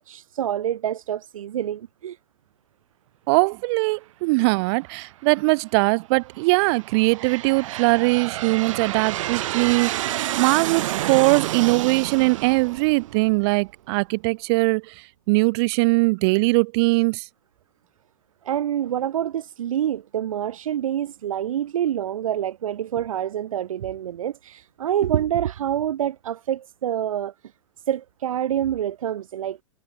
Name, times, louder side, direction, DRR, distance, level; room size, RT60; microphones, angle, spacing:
voice 1, 0.0-2.2 18.4-27.3 27.9-29.6, right 10 dB, 85° right, 0.6 m, -26 dB
voice 2, 3.3-14.9 15.3-17.2, right 27 dB, 50° right, 0.9 m, -21 dB
Aircraft, 4.9-5.4 6.1-13.7, right 14 dB, 70° right, 2.0 m, -30 dB
hypercardioid pair, 115°, 17 cm